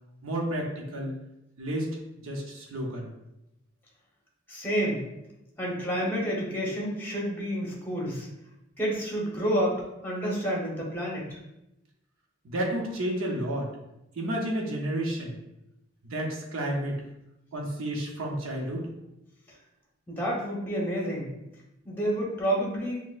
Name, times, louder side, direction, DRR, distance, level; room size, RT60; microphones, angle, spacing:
voice 1, 0.2-1.1 1.6-2.0 2.2-3.1 12.4-13.7 14.1-15.4 16.1-17.0 17.5-18.9, right 1 dB, 90° right, -1 dB, 0.7 m, -31 dB
voice 2, 4.5-5.0 5.6-8.3 8.8-11.4 19.5-19.6 20.1-21.3 21.8-23.0, equal, 10° left, -4 dB, 0.9 m, -29 dB
6.0 x 2.1 x 2.4 m, 0.89 s
head